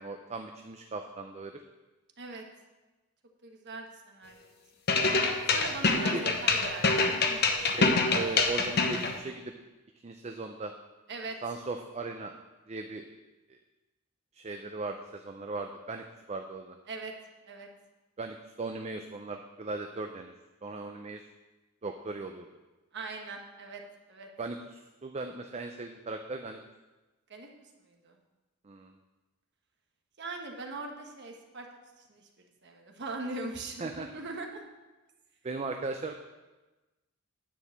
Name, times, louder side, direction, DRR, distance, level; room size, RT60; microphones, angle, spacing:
voice 1, 0.0-1.6 6.1-6.2 7.6-9.5 10.0-10.7 11.4-12.3 12.7-13.0 14.3-16.8 18.2-20.3 20.6-21.2 21.8-22.5 24.4-26.6 28.6-28.9 33.8-34.1 35.4-36.1, right 3 dB, 30° right, 5 dB, 0.5 m, -38 dB
voice 2, 3.4-4.5 5.5-7.4 11.1-11.4 16.9-17.1 17.4-17.7 22.9-23.8 24.1-24.3 27.3-27.5 27.9-28.1 30.2-31.7 32.1-32.3 32.6-34.6, right 3 dB, 55° right, 3 dB, 1.2 m, -40 dB
sound 1, 4.9-9.1, left 3 dB, 50° left, 0.9 m, -25 dB
9.8 x 4.7 x 7.2 m, 1.1 s
head